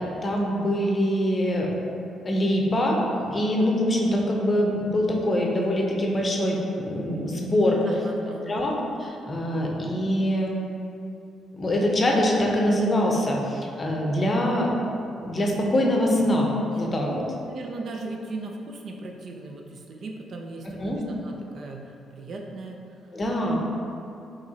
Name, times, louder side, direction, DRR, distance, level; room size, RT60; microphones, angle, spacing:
voice 1, 0.0-1.7 2.2-8.0 8.5-8.7 9.0-10.6 11.5-14.7 15.2-16.5 16.8-17.1 20.8-21.0 23.1-23.6, equal, 30° left, -1 dB, 0.6 m, -24 dB
voice 2, 7.9-8.6 16.8-22.8, right 2 dB, 55° right, 1 dB, 0.4 m, -38 dB
4.7 x 3.0 x 2.8 m, 2.6 s
cardioid pair, 90°, 0 cm